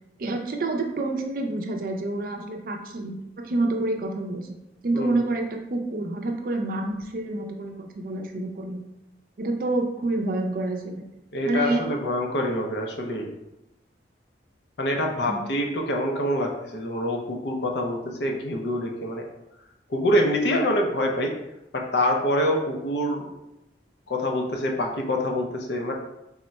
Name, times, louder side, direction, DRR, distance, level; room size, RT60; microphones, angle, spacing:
voice 1, 0.2-4.5 4.8-8.8 9.4-11.0 11.4-11.9 15.3-15.5, right 2 dB, 50° right, 4 dB, 0.4 m, -28 dB
voice 2, 11.3-13.3 14.8-19.2 19.9-21.3 21.7-23.3 24.1-25.9, left 1 dB, 70° left, 1 dB, 0.6 m, -25 dB
3.6 x 2.1 x 4.1 m, 0.90 s
head